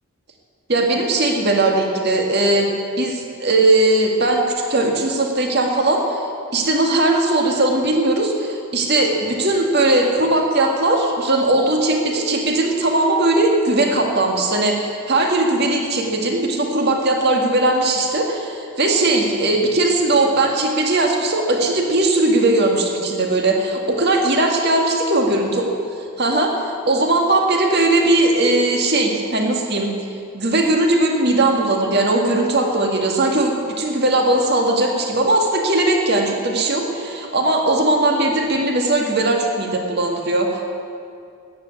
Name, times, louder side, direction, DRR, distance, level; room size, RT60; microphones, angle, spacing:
voice 1, 0.7-2.7 3.0-6.2 6.5-25.5 26.2-29.9 30.3-40.6, right 2 dB, 45° right, 2 dB, 1.9 m, -18 dB
14.0 x 9.7 x 9.6 m, 2.4 s
head